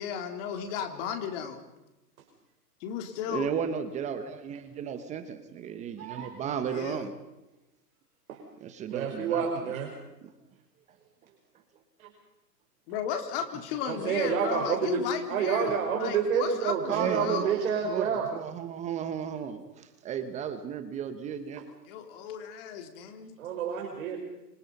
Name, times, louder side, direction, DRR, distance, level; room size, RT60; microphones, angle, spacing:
voice 1, 0.0-1.6 2.8-3.5 6.7-7.1 12.9-17.5 21.9-23.3, left 8 dB, 35° left, 6 dB, 3.7 m, -35 dB
voice 2, 3.3-7.1 8.6-9.8 10.2-10.3 16.9-17.6 17.9-21.7, right 8 dB, 15° right, 10 dB, 1.2 m, -34 dB
voice 3, 6.0-6.3 8.3-8.4 8.9-9.9 12.0-12.1 13.9-15.0 15.3-18.3 23.4-24.2, right 7 dB, 55° right, 2 dB, 5.3 m, -28 dB
29.5 x 26.0 x 5.5 m, 0.98 s
hypercardioid pair, 150°, 50 cm